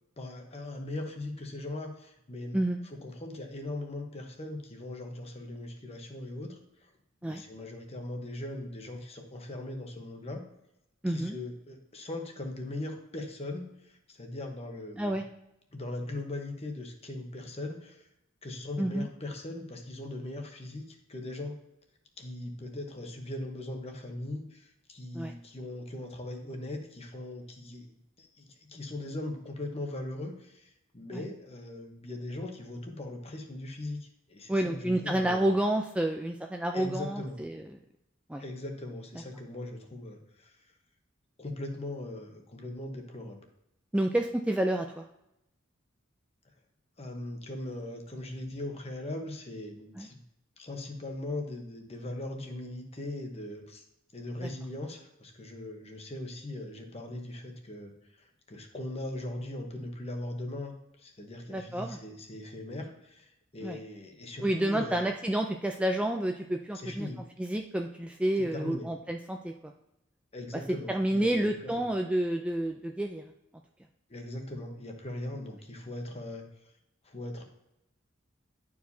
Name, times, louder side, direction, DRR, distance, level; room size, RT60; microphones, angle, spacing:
voice 1, 0.2-2.6 2.8-6.9 7.2-10.4 11.1-15.2 15.7-18.1 18.4-21.6 22.2-27.9 28.2-35.6 36.7-37.4 38.4-40.6 41.4-43.4 47.0-50.2 50.6-53.8 54.1-65.0 66.7-67.2 68.4-68.9 70.3-71.8 74.1-76.4 77.0-77.4, left 1 dB, 30° left, 3 dB, 1.0 m, -40 dB
voice 2, 11.0-11.3 15.0-15.2 18.8-19.1 25.1-25.3 31.1-31.2 34.5-37.6 38.3-38.4 43.9-45.0 50.0-50.1 54.4-54.5 61.5-62.0 63.6-63.8 64.4-67.1 67.4-69.7 70.9-73.2, right 1 dB, 5° right, 3 dB, 0.3 m, -29 dB
11.0 x 4.8 x 2.7 m, 0.85 s
head